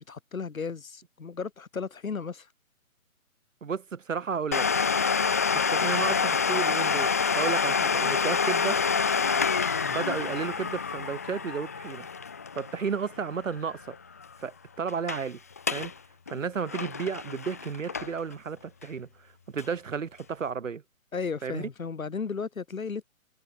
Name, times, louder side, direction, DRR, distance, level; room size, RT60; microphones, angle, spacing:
voice 1, 0.0-2.5 21.1-23.0, left 5 dB, 75° left, 7.0 m, -34 dB
voice 2, 3.6-4.7 5.7-8.8 9.8-12.1 12.5-14.0 14.4-15.4 15.7-15.9 16.3-20.8 21.4-21.6, right 6 dB, 65° right, 5.1 m, -33 dB
Domestic sounds home sounds, 4.5-14.0 14.2-14.3 14.9-15.2 15.6-15.9 16.3-18.3 18.8-18.9 19.6-19.7, left 5 dB, 10° left, 0.7 m, -27 dB
hypercardioid pair, 170°, 42 cm